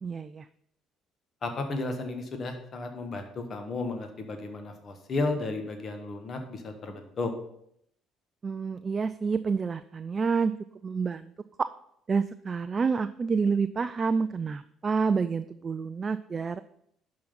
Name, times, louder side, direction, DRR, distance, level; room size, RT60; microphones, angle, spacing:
voice 1, 0.0-0.5 8.4-10.5 10.8-11.3 11.6-11.7 12.1-16.6, right 5 dB, 35° right, 12 dB, 0.3 m, -28 dB
voice 2, 1.4-7.3, left 3 dB, 45° left, 5 dB, 1.4 m, -33 dB
11.0 x 3.8 x 5.6 m, 0.72 s
figure-of-eight pair, 50°, 0 cm